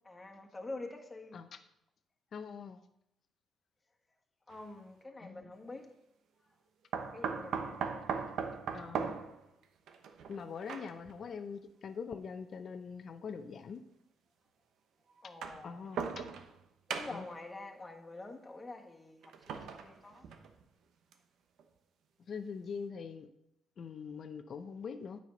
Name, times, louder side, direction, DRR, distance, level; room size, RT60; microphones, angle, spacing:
voice 1, 0.0-1.4 4.5-5.9 7.0-8.1 15.2-15.8 16.9-19.2 19.5-20.3, left 2 dB, 20° left, 1.5 m, -47 dB
voice 2, 2.3-2.8 5.2-5.5 8.7-9.2 10.3-13.8 15.6-16.0 17.1-17.2 22.3-23.3 23.8-25.2, left 6 dB, 55° left, 0.6 m, -43 dB
sound 1, 4.5-4.6 6.9-11.2 12.2-12.3 13.4-13.5 15.2-16.6 16.9-17.4 19.2-20.6 21.1-21.2 21.6-21.7, right 6 dB, 75° right, 0.9 m, -39 dB
9.2 x 5.6 x 5.3 m
cardioid pair, 90°, 0 cm